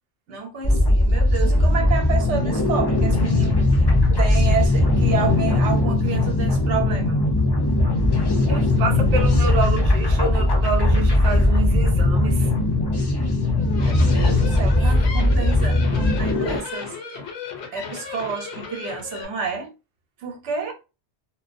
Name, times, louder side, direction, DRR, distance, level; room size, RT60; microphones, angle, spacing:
voice 1, 0.3-3.6 4.2-7.2 13.8-16.9 17.7-19.7 20.2-20.7, right 6 dB, 80° right, 1.0 m, -29 dB
sound 1, 0.6-16.6, left 2 dB, 40° left, 0.3 m, -19 dB
voice 2, 8.5-12.5, right 4 dB, 60° right, 0.7 m, -27 dB
sound 2, 13.5-19.2, left 6 dB, 75° left, 0.9 m, -35 dB
2.6 x 2.1 x 2.5 m
omnidirectional pair, 1.2 m